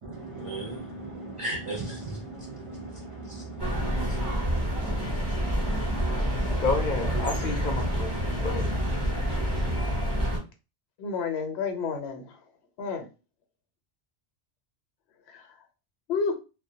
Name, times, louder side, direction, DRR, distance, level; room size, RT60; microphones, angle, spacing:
voice 1, 0.0-4.3, right 2 dB, 45° right, 0.4 m, -37 dB
sound 1, 3.6-10.4, equal, 20° right, 0.8 m, -28 dB
voice 2, 6.5-8.7, left 4 dB, 55° left, 0.6 m, -30 dB
voice 3, 11.0-12.5 12.8-13.1 15.3-15.6 16.1-16.3, left 5 dB, 80° left, 0.9 m, -31 dB
2.2 x 2.1 x 2.7 m
omnidirectional pair, 1.1 m